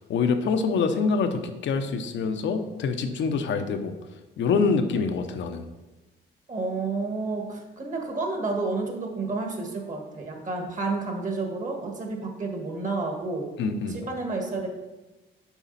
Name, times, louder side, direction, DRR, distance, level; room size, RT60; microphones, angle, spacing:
voice 1, 0.0-3.9 4.4-5.6 13.6-14.0, left 5 dB, 70° left, 7 dB, 0.7 m, -25 dB
voice 2, 6.5-13.5 13.9-14.7, right 3 dB, 40° right, 2 dB, 1.5 m, -30 dB
7.1 x 4.9 x 4.1 m, 1.1 s
cardioid pair, 90°, 20 cm